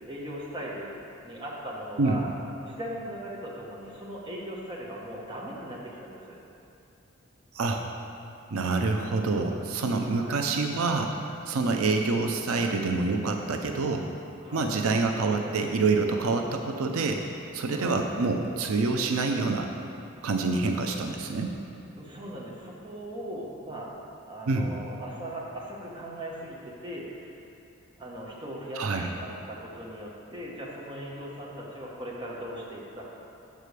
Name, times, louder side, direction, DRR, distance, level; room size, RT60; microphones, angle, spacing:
voice 1, 0.1-2.3 2.6-6.4 10.0-10.4 14.4-14.7 17.7-17.9 22.0-23.9 24.3-27.2 28.0-33.1, right 1 dB, 20° right, -4 dB, 1.1 m, -39 dB
voice 2, 8.5-14.1 14.5-17.2 17.5-19.7 20.2-21.5 24.5-24.7 28.8-29.1, right 3 dB, 85° right, 3 dB, 0.6 m, -27 dB
6.6 x 4.9 x 6.6 m, 2.9 s
head